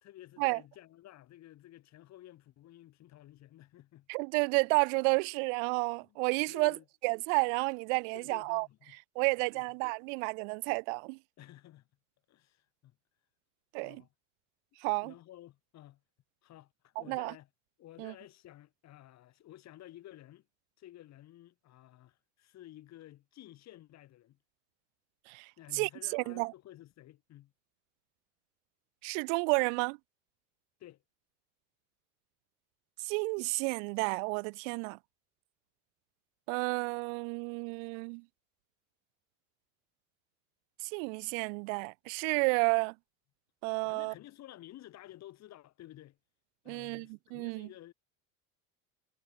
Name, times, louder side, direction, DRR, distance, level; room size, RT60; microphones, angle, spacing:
voice 1, 0.0-4.1 6.0-6.2 6.5-6.8 8.1-9.6 11.4-11.9 12.3-13.0 13.8-14.1 15.0-16.0 16.4-17.5 17.8-20.5 20.8-24.4 25.6-27.5 30.8-31.0 43.8-46.2 46.6-47.9, left 14 dB, 45° left, 2.8 m, -53 dB
voice 2, 4.1-6.8 7.0-8.7 9.2-11.2 13.7-14.0 14.8-15.1 17.1-17.3 18.0-18.1 25.3-26.5 29.0-30.0 33.0-35.0 36.5-38.2 40.8-42.9 43.6-44.1 46.7-47.7, right 38 dB, 70° right, 0.6 m, -31 dB
supercardioid pair, 130°, 39 cm